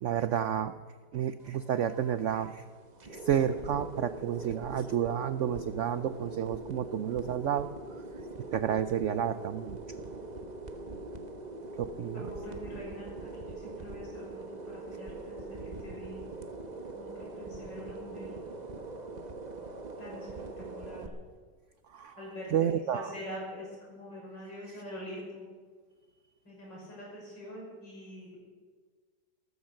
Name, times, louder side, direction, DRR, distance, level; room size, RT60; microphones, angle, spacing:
voice 1, 0.0-0.8 1.1-2.6 3.0-7.7 8.5-9.8 11.8-12.2 21.9-22.2 22.5-23.1, right 9 dB, 80° right, 12 dB, 0.6 m, -30 dB
sound 1, 1.4-21.1, right 2 dB, 30° right, 1.0 m, -42 dB
voice 2, 12.1-16.2 16.9-18.3 20.0-21.1 22.2-22.5 22.9-25.5 26.4-28.4, equal, 80° left, -3 dB, 6.5 m, -44 dB
15.0 x 13.5 x 6.5 m, 1.5 s
omnidirectional pair, 1.9 m